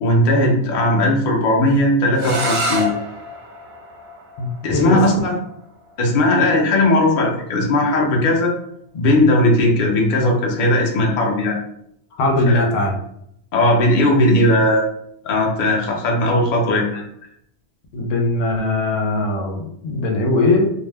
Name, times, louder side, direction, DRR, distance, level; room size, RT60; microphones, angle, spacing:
voice 1, 0.0-2.9 4.6-5.3 6.0-8.5 8.9-11.6 12.4-12.6 13.5-14.8 15.2-16.9, left 1 dB, 50° left, 0 dB, 0.7 m, -17 dB
sound 1, 2.1-7.9, equal, 70° right, 1.0 m, -30 dB
voice 2, 4.4-5.0 12.2-13.0 16.9-17.0 17.9-20.7, left 2 dB, 90° left, 1 dB, 1.0 m, -20 dB
2.6 x 2.1 x 3.3 m, 0.72 s
omnidirectional pair, 1.3 m